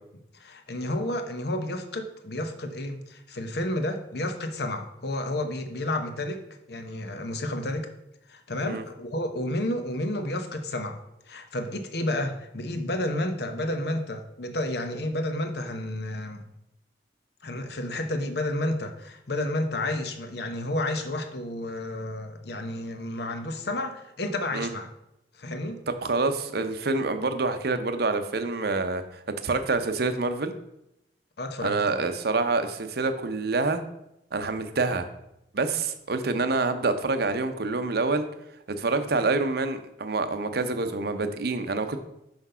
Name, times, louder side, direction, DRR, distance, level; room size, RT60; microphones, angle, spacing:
voice 1, 0.3-6.4 6.7-7.9 8.3-11.0 11.3-16.5 17.4-24.9 25.3-25.8 31.4-32.0, left 1 dB, 60° left, 7 dB, 0.9 m, -31 dB
voice 2, 26.0-30.5 31.6-33.8 34.3-35.1 35.5-38.3 38.7-42.0, right 3 dB, 60° right, 9 dB, 0.7 m, -27 dB
6.0 x 5.2 x 5.5 m, 0.84 s
head